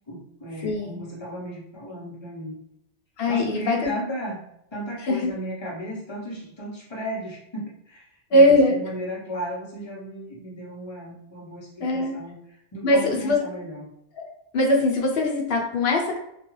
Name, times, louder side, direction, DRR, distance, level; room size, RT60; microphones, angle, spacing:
voice 1, 0.1-2.6 3.3-4.4 4.7-13.9, equal, 30° left, -4 dB, 0.6 m, -35 dB
voice 2, 0.6-1.0 3.2-3.9 5.0-5.3 8.3-8.8 11.8-12.2 12.8-13.4 14.2-14.3 14.5-16.2, left 1 dB, 65° left, 0 dB, 0.8 m, -21 dB
2.3 x 2.3 x 3.0 m, 0.77 s
omnidirectional pair, 1.1 m